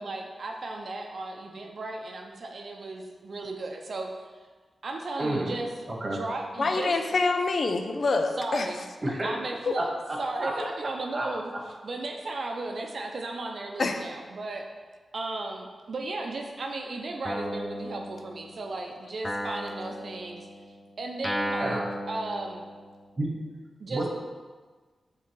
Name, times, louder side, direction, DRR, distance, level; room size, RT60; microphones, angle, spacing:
voice 1, 0.0-4.1 4.8-5.7 6.0-6.9 8.4-8.8 9.2-9.9 10.2-11.5 11.8-14.6 15.1-20.5 21.0-22.7 23.8-24.0, right 2 dB, 70° right, 2 dB, 0.6 m, -35 dB
voice 2, 5.2-5.5 5.9-6.2 9.0-9.3 9.8-9.9 10.4-10.5 11.1-11.2 21.6-21.9 23.2-23.3 23.9-24.1, right 1 dB, 35° right, -2 dB, 1.7 m, -29 dB
voice 3, 6.6-8.7 13.8-14.0, left 3 dB, 65° left, 5 dB, 0.5 m, -26 dB
Guitar, 17.2-18.8 19.2-23.1, equal, 20° left, 0.9 m, -35 dB
5.7 x 3.8 x 4.6 m, 1.4 s
cardioid pair, 50°, 0 cm